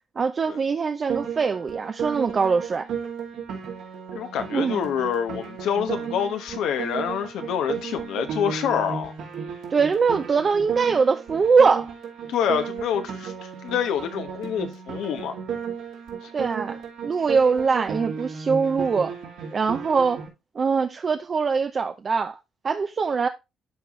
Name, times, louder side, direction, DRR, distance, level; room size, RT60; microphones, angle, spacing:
voice 1, 0.2-2.9 4.5-4.8 9.7-11.9 16.3-19.1 19.5-20.2 20.6-22.4 22.6-23.3, right 5 dB, 40° right, 0.5 m, -22 dB
Piano, 1.1-20.3, right 7 dB, 80° right, 2.4 m, -34 dB
voice 2, 4.1-9.1 12.3-13.3 13.6-15.3 16.2-16.3, left 8 dB, 85° left, 1.1 m, -27 dB
11.0 x 4.0 x 3.1 m
cardioid pair, 90°, 0 cm